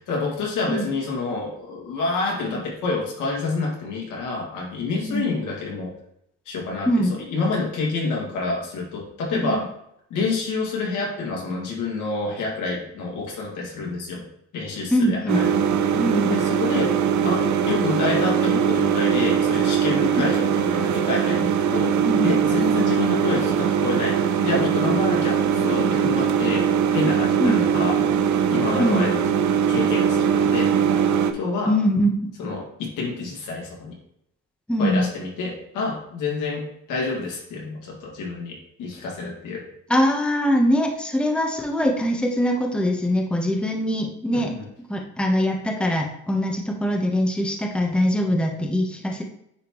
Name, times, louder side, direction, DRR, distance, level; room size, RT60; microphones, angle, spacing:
voice 1, 0.1-5.9 6.5-9.7 10.1-14.2 14.5-15.5 16.0-16.9 17.2-28.0 28.5-29.2 29.7-30.7 31.3-31.7 32.4-34.0 34.8-39.6 44.3-44.7, left 3 dB, 85° left, -2 dB, 2.1 m, -28 dB
voice 2, 14.9-15.4 15.9-16.3 20.2-20.3 22.0-22.3 27.4-27.6 28.8-29.1 31.7-32.3 34.7-35.1 39.9-44.5 44.9-49.2, equal, 5° left, 1 dB, 1.0 m, -22 dB
sound 1, 15.3-31.3, right 8 dB, 70° right, 0.7 m, -21 dB
9.5 x 3.6 x 3.0 m, 0.75 s
cardioid pair, 90°, 30 cm